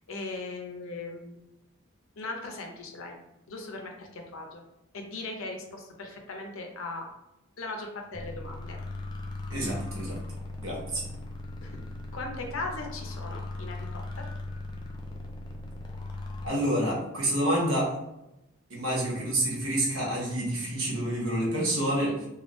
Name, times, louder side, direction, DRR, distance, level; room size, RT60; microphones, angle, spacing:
voice 1, 0.1-1.4 2.2-3.2 3.5-4.6 4.9-7.1 7.6-8.8 11.6-11.8 12.1-14.3 21.9-22.2, left 2 dB, 65° left, 2 dB, 0.6 m, -38 dB
sound 1, 8.1-16.5, left 2 dB, 20° left, 0.3 m, -38 dB
voice 2, 9.5-10.2 10.6-11.1 16.4-17.9 18.7-22.1, right 1 dB, 65° right, -4 dB, 1.1 m, -28 dB
3.1 x 2.4 x 3.0 m, 0.90 s
head